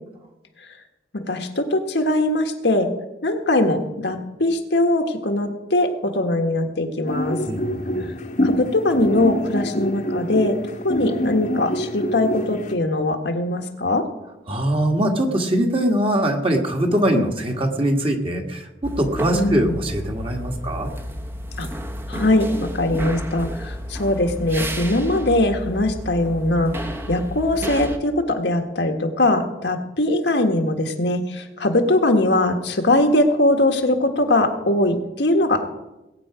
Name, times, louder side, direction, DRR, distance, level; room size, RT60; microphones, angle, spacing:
voice 1, 1.1-2.9 3.2-7.4 8.4-10.6 10.8-14.1 17.1-17.2 19.3-19.8 21.6-21.7 22.1-26.7 27.1-35.7, left 1 dB, 75° left, 5 dB, 1.6 m, -21 dB
sound 1, 7.1-12.7, equal, 45° left, 1.2 m, -26 dB
voice 2, 7.5-8.1 14.5-20.9, right 1 dB, 30° right, 2 dB, 1.8 m, -22 dB
sound 2, 18.8-28.0, equal, 15° right, 1.0 m, -31 dB
20.5 x 8.8 x 5.0 m, 0.99 s
head